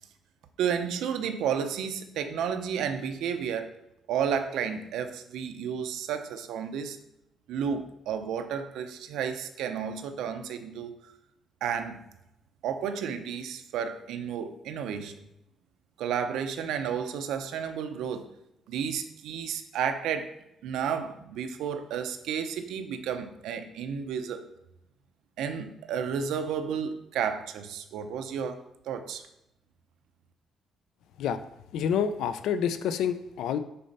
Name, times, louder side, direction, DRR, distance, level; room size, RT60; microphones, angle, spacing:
voice 1, 0.6-3.8 4.1-7.0 7.5-11.1 11.6-12.0 12.6-15.3 16.0-18.3 18.7-20.4 20.6-24.4 25.4-29.2, right 7 dB, 90° right, 8 dB, 0.7 m, -32 dB
voice 2, 31.7-33.6, left 8 dB, 85° left, 11 dB, 0.5 m, -28 dB
6.7 x 4.3 x 5.4 m, 0.85 s
cardioid pair, 150°, 0 cm